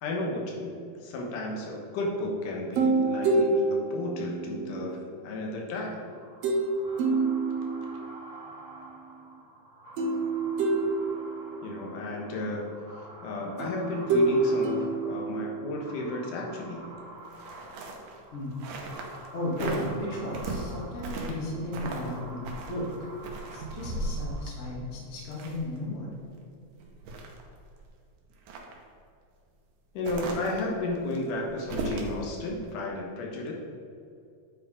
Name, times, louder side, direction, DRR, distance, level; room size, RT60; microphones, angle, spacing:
voice 1, 0.0-6.0 11.6-12.7 13.0-16.9 29.9-33.5, left 2 dB, 80° left, -1 dB, 2.7 m, -33 dB
sound 1, 2.7-5.1 6.4-6.7 7.0-8.3 10.0-11.7 13.6-15.9, right 2 dB, 70° right, 1.8 m, -27 dB
sound 2, 6.0-24.9, right 2 dB, 40° right, 0.5 m, -48 dB
sound 3, 17.3-19.3 19.5-19.9 20.3-21.5 21.7-22.2 22.4-25.8 26.2-26.3 26.7-27.9 28.3-28.8 30.0-32.2 32.6-32.7, right 2 dB, 90° right, 2.6 m, -37 dB
voice 2, 19.3-23.1 23.5-26.1, left 1 dB, 30° left, -4 dB, 1.6 m, -34 dB
9.2 x 4.8 x 4.9 m, 2.4 s
omnidirectional pair, 3.6 m